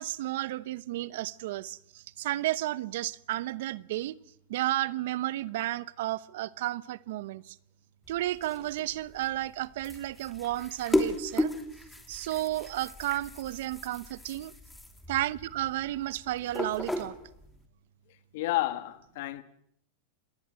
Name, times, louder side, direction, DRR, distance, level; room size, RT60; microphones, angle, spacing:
voice 1, 0.0-4.2 4.5-7.5 8.1-11.5 12.1-14.5 15.1-17.1, right 15 dB, 70° right, 0.9 m, -32 dB
sound 1, 8.0-17.6, left 1 dB, 5° left, 3.0 m, -36 dB
voice 2, 18.3-19.4, left 17 dB, 65° left, 1.8 m, -30 dB
27.0 x 19.0 x 7.6 m
hypercardioid pair, 125°, 0 cm